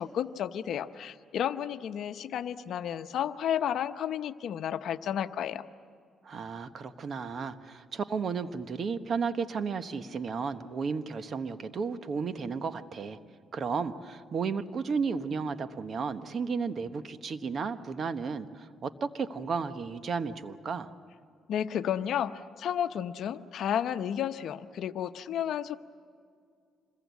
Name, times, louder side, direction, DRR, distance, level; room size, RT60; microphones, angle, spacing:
voice 1, 0.0-5.6 21.5-25.7, left 9 dB, 70° left, 11 dB, 0.8 m, -32 dB
voice 2, 6.2-13.2 13.5-20.9, right 5 dB, 50° right, 11 dB, 1.2 m, -33 dB
26.5 x 21.5 x 8.3 m, 2.3 s
cardioid pair, 90°, 0 cm